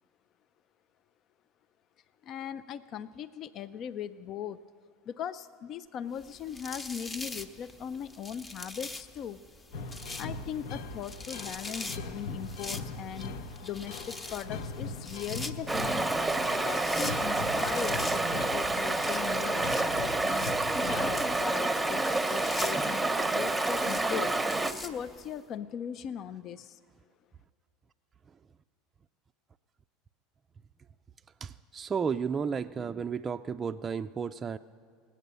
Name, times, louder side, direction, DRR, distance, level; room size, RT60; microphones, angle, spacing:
voice 1, 2.2-4.6 5.1-9.4 10.2-13.3 13.6-16.1 16.6-20.5 20.8-24.4 24.8-26.8, left 9 dB, 50° left, 14 dB, 0.4 m, -39 dB
sound 1, 6.2-25.4, left 2 dB, 25° left, 0.9 m, -44 dB
sound 2, 9.7-21.5, left 3 dB, 70° left, 0.7 m, -41 dB
Stream, 15.7-24.7, right 2 dB, 5° right, 0.9 m, -29 dB
voice 2, 31.4-34.6, right 6 dB, 25° right, 6 dB, 0.3 m, -33 dB
18.5 x 8.5 x 6.8 m, 2.1 s
hypercardioid pair, 85°, 0 cm